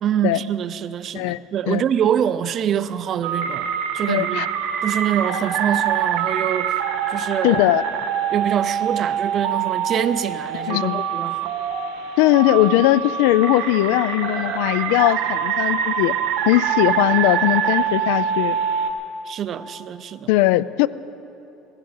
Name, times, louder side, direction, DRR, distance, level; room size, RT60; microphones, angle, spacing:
voice 1, 0.0-3.7 3.9-4.5 4.8-6.8 7.1-7.6 8.3-11.5 19.3-20.3, right 9 dB, 35° right, 14 dB, 0.5 m, -25 dB
sound 1, 3.2-18.9, right 8 dB, 85° right, 1.3 m, -24 dB
voice 2, 4.1-4.5 7.4-7.8 10.7-11.0 12.2-16.1 16.5-18.6 20.3-20.9, left 16 dB, 85° left, 18 dB, 0.4 m, -19 dB
15.5 x 15.5 x 5.7 m, 3.0 s
cardioid pair, 165°, 0 cm